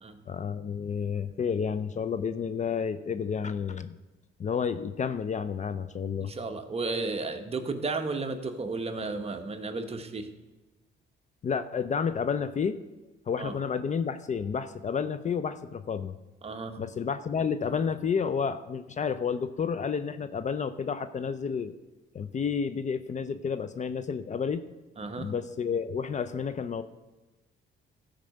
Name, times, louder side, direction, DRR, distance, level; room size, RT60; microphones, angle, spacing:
voice 1, 0.3-3.9 4.4-6.3 11.4-12.8 13.3-16.2 16.8-21.7 22.1-24.6 25.2-26.8, left 6 dB, 35° left, 12 dB, 0.5 m, -30 dB
voice 2, 6.2-10.3 13.4-13.5 16.4-16.8 25.0-25.3, right 3 dB, 30° right, 6 dB, 1.1 m, -33 dB
13.0 x 4.8 x 6.5 m, 1.1 s
cardioid pair, 90°, 20 cm